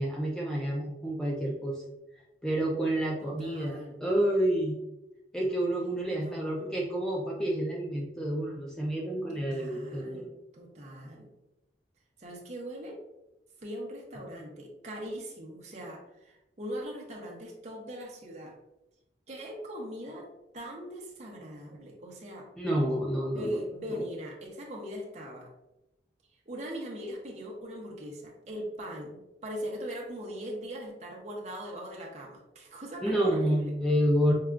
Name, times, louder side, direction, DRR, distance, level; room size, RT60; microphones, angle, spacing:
voice 1, 0.0-1.8 2.4-4.8 5.3-10.3 22.6-23.6 23.9-24.0 33.0-34.3, right 1 dB, 5° left, -3 dB, 0.4 m, -29 dB
voice 2, 3.2-4.0 6.1-6.8 9.3-11.3 12.2-13.0 13.6-18.5 19.3-20.3 20.5-22.5 23.3-25.5 26.5-33.7, equal, 40° right, 0 dB, 0.8 m, -40 dB
5.5 x 2.3 x 2.4 m, 0.92 s
head